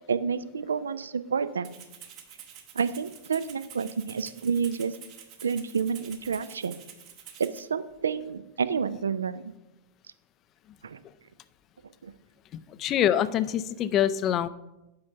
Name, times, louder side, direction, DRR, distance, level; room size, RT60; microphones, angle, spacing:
voice 1, 0.0-1.7 2.7-4.9 5.4-6.7 7.4-9.5 10.8-11.0 12.0-12.1, right 6 dB, 70° right, 14 dB, 0.3 m, -29 dB
Rattle (instrument), 1.6-7.6, right 9 dB, 40° right, 0.8 m, -48 dB
voice 2, 12.5-14.5, left 10 dB, 35° left, 15 dB, 0.3 m, -25 dB
5.6 x 5.5 x 5.3 m, 0.97 s
figure-of-eight pair, 90°, 0 cm